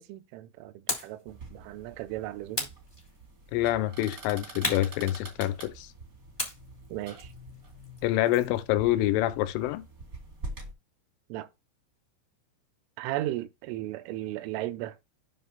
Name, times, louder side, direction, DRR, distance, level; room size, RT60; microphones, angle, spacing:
voice 1, 0.0-2.7 6.9-7.3 11.3-11.5 13.0-15.0, right 15 dB, 85° right, 3.1 m, -36 dB
sound 1, 0.9-1.2 2.5-3.5 4.6-5.7 6.4-8.6, left 1 dB, 30° left, 0.4 m, -36 dB
sound 2, 1.3-10.7, right 2 dB, 45° right, 1.1 m, -46 dB
voice 2, 3.5-5.9 8.0-9.8, left 14 dB, 85° left, 3.0 m, -26 dB
9.4 x 3.3 x 5.5 m
omnidirectional pair, 5.7 m